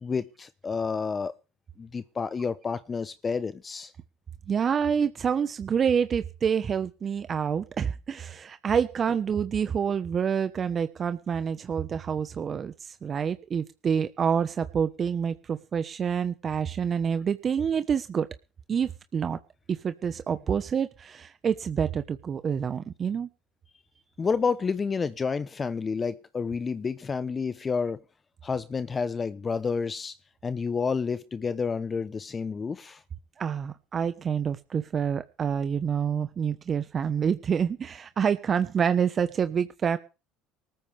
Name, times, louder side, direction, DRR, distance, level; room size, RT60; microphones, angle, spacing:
voice 1, 0.0-1.3 1.8-3.9 24.2-28.0 28.4-30.1 30.4-33.0, left 5 dB, 30° left, 1.0 m, -29 dB
voice 2, 4.5-18.3 18.7-19.4 19.7-23.3 33.4-40.0, right 7 dB, 40° right, 1.2 m, -27 dB
19.0 x 14.0 x 3.5 m
hypercardioid pair, 75°, 0 cm